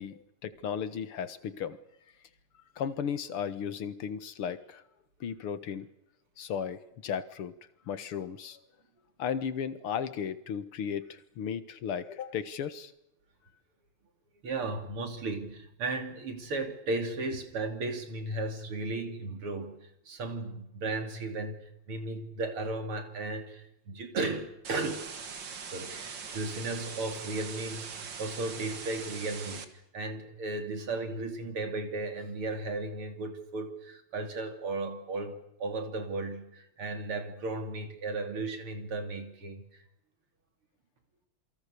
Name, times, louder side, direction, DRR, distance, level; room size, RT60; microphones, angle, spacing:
voice 1, 0.0-1.8 2.8-4.8 5.2-5.9 6.4-7.5 7.9-8.6 9.2-12.9, left 7 dB, 85° left, 13 dB, 2.3 m, -35 dB
voice 2, 14.4-25.1 25.7-39.7, right 2 dB, 80° right, 7 dB, 3.9 m, -35 dB
sound 1, 24.6-29.6, right 6 dB, 60° right, 2.6 m, -42 dB
28.0 x 23.5 x 6.8 m, 0.80 s
omnidirectional pair, 2.4 m